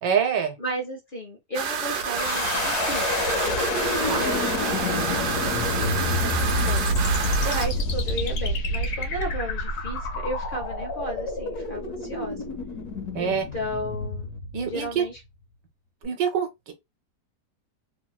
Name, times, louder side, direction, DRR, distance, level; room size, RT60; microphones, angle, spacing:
voice 1, 0.0-0.6 4.1-4.2 4.7-4.9 13.1-13.5 14.5-15.0 16.0-16.7, right 7 dB, 90° right, 1.5 m, -25 dB
voice 2, 0.6-3.1 3.4-3.7 4.2-4.5 4.8-6.9 7.4-12.4 13.2-14.3 14.6-15.2, right 1 dB, 40° left, 0.8 m, -34 dB
sound 1, 1.5-7.7, right 6 dB, 70° right, 1.2 m, -29 dB
sound 2, 2.2-15.1, left 2 dB, 70° left, 1.2 m, -28 dB
3.0 x 2.8 x 2.3 m
omnidirectional pair, 1.8 m